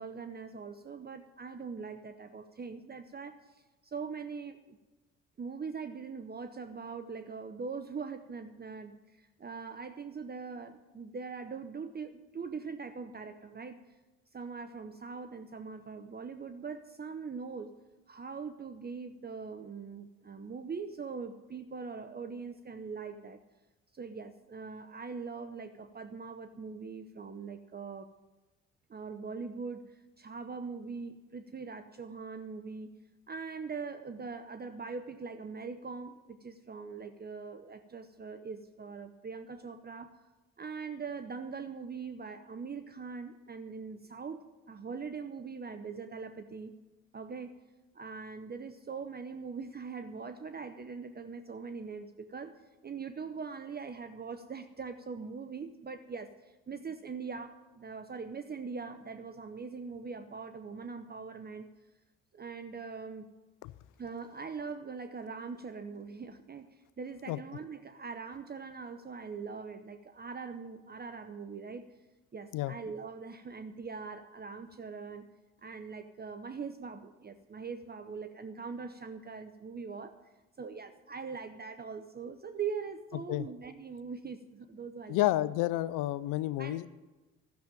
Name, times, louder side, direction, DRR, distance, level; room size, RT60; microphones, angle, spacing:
voice 1, 0.0-4.8 5.4-13.8 14.3-17.7 18.1-23.4 23.9-28.1 28.9-32.9 33.3-40.2 40.6-46.7 47.1-47.6 47.9-61.7 62.3-63.3 64.0-66.7 67.0-71.9 72.3-75.3 75.6-80.2 80.6-85.3 86.6-86.9, right 5 dB, 30° right, 9 dB, 0.8 m, -42 dB
voice 2, 85.1-86.9, left 16 dB, 65° left, 17 dB, 0.6 m, -30 dB
12.5 x 7.1 x 9.0 m, 1.1 s
hypercardioid pair, 50°, 34 cm